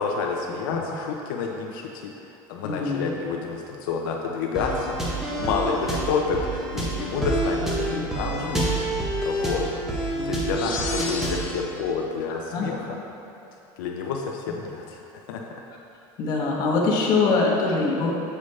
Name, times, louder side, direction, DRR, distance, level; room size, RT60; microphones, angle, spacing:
voice 1, 0.0-5.0 5.4-9.7 10.2-13.0 13.8-15.4, left 5 dB, 85° left, 0 dB, 0.6 m, -29 dB
voice 2, 2.6-3.1 7.9-8.5 10.1-10.4 12.5-12.7 16.2-18.1, left 3 dB, 40° left, -3 dB, 1.1 m, -24 dB
sound 1, 4.6-11.5, right 2 dB, 5° right, 0.9 m, -28 dB
sound 2, 10.6-11.9, left 4 dB, 65° left, 1.0 m, -33 dB
6.9 x 6.2 x 3.2 m, 2.7 s
cardioid pair, 165°, 11 cm